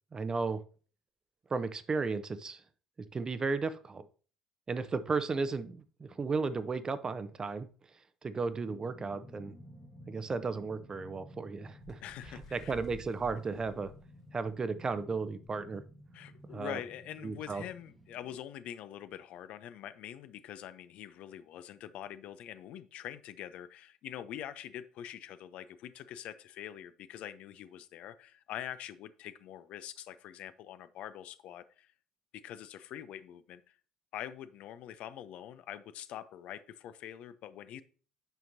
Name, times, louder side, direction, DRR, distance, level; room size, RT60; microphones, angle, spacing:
voice 1, 0.1-0.6 1.5-2.6 3.1-4.0 4.7-7.7 8.2-9.5 10.1-12.0 12.5-13.9 14.3-15.8 16.5-16.8 17.2-17.6, right 4 dB, 30° right, 0.7 m, -34 dB
sound 1, 8.2-18.4, equal, ahead, 1.1 m, -54 dB
Bird, 11.8-15.0 15.5-15.6 15.9-16.2 16.9-17.0, left 1 dB, 85° left, 1.8 m, -53 dB
voice 2, 12.0-12.8 16.1-31.9 32.3-33.7 34.1-37.8, left 11 dB, 55° left, 0.5 m, -45 dB
9.1 x 5.8 x 2.7 m
figure-of-eight pair, 55°, 3 cm